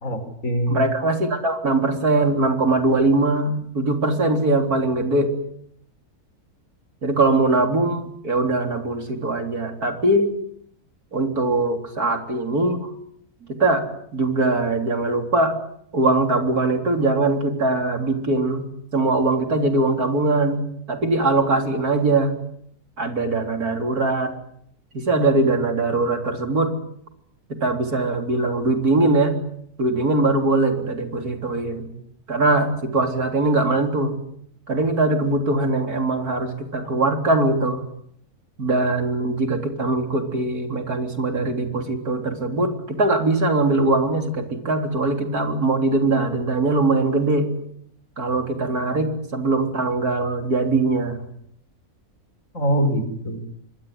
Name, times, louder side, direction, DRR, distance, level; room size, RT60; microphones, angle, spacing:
voice 1, 0.0-0.8 52.5-53.4, equal, 60° left, 9 dB, 5.4 m, -23 dB
voice 2, 0.7-5.3 7.0-10.3 11.1-12.9 13.5-13.8 14.1-15.6 15.9-18.7 18.9-22.3 23.0-24.3 24.9-26.7 27.5-29.4 29.8-31.9 32.3-34.1 34.7-37.8 38.6-47.5 48.2-51.2, right 2 dB, 80° right, 5 dB, 4.2 m, -21 dB
25.5 x 22.5 x 9.7 m, 0.69 s
omnidirectional pair, 1.6 m